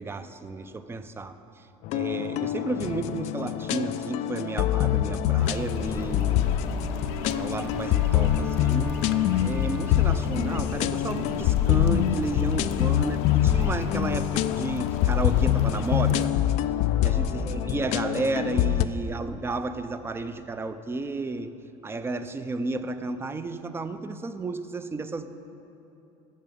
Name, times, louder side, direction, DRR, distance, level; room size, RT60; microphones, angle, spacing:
voice 1, 0.0-1.7 1.9-6.6 7.3-9.0 9.4-16.3 17.0-21.5 21.8-25.3, right 3 dB, 20° right, 10 dB, 0.6 m, -32 dB
sound 1, 1.8-18.8, left 12 dB, 65° left, 0.4 m, -25 dB
sound 2, 5.4-16.3, left 6 dB, 85° left, 0.8 m, -37 dB
Wind instrument woodwind instrument, 6.2-11.6, right 2 dB, 50° right, 2.1 m, -41 dB
14.0 x 6.8 x 5.3 m, 3.0 s
supercardioid pair, 105°, 13 cm